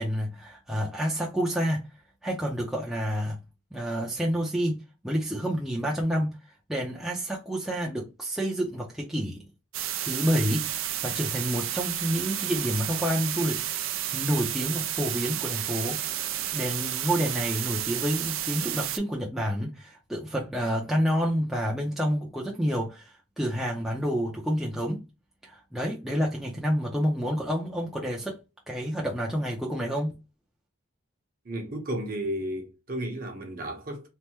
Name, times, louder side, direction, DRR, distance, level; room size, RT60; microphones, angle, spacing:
voice 1, 0.0-1.8 2.2-3.4 3.7-4.8 5.0-6.3 6.7-9.4 10.0-13.6 14.1-16.0 16.5-25.0 25.4-28.3 28.7-30.1, equal, ahead, 0.5 m, -29 dB
sound 1, 9.7-19.0, right 11 dB, 65° right, 0.4 m, -31 dB
voice 2, 31.4-34.1, right 1 dB, 40° right, 0.8 m, -33 dB
3.3 x 2.1 x 2.9 m
head